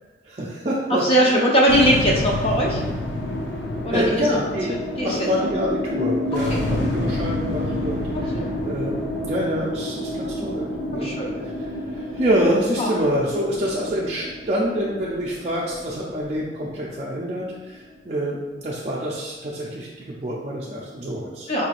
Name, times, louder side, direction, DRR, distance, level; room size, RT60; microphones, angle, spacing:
voice 1, 0.2-1.4 3.9-4.7 5.0-21.5, equal, 40° right, -6 dB, 0.4 m, -26 dB
voice 2, 1.0-2.8 3.8-4.4 5.0-5.2 6.5-7.0 8.1-8.5 11.0-11.3 12.8-13.0 21.5-21.7, equal, 35° left, -2 dB, 0.6 m, -21 dB
sound 1, 1.7-18.1, left 1 dB, 80° left, 0.6 m, -29 dB
4.6 x 3.1 x 2.5 m, 1.2 s
head